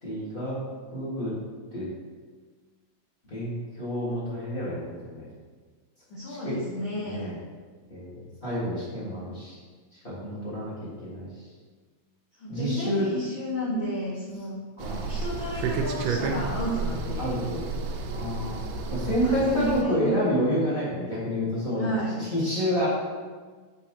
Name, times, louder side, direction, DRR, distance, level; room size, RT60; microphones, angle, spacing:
voice 1, 0.0-0.6 0.9-1.3 1.7-1.9 3.3-5.3 6.3-6.6 7.0-7.3 7.9-9.6 10.0-10.7 11.0-11.3 12.5-13.1 14.8-15.1 17.2-17.6 18.1-18.6 18.9-22.9, equal, 25° left, -9 dB, 1.4 m, -29 dB
voice 2, 6.1-7.2 12.4-14.6 15.0-17.4 19.1-20.2 21.8-22.3, equal, 55° left, -9 dB, 1.5 m, -32 dB
sound 1, 14.8-19.8, right 4 dB, 80° right, 1.5 m, -31 dB
5.9 x 5.7 x 2.9 m, 1.5 s
omnidirectional pair, 3.4 m